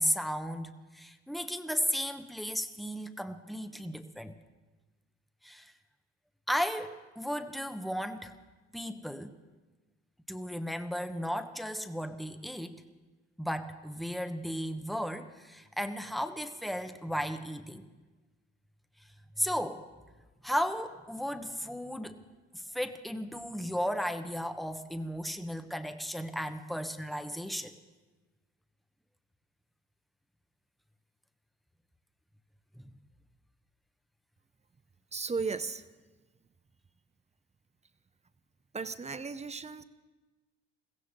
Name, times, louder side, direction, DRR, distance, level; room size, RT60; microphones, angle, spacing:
voice 1, 0.0-4.3 5.4-5.7 6.5-8.3 8.7-9.4 10.3-12.8 13.4-17.9 19.4-19.8 20.4-22.2 22.5-27.7, equal, ahead, 8 dB, 1.1 m, -35 dB
voice 2, 35.1-35.8 38.7-39.8, right 4 dB, 20° right, 13 dB, 0.8 m, -35 dB
22.0 x 16.0 x 3.7 m, 1.2 s
hypercardioid pair, 65°, 35 cm